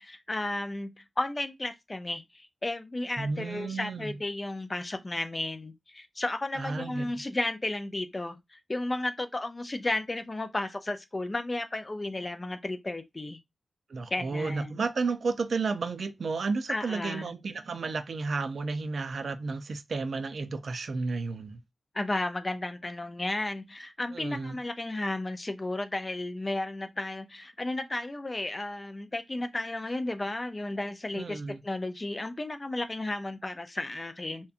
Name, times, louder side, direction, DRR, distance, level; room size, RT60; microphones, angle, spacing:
voice 1, 0.0-13.4 14.1-14.8 16.7-17.3 21.9-34.5, left 2 dB, 25° left, 0.3 m, -33 dB
voice 2, 3.2-4.1 6.6-7.2 13.9-21.6 24.1-24.6 31.1-31.6, right 4 dB, 60° right, 0.3 m, -32 dB
2.7 x 2.2 x 2.4 m
wide cardioid pair, 160°, 0 cm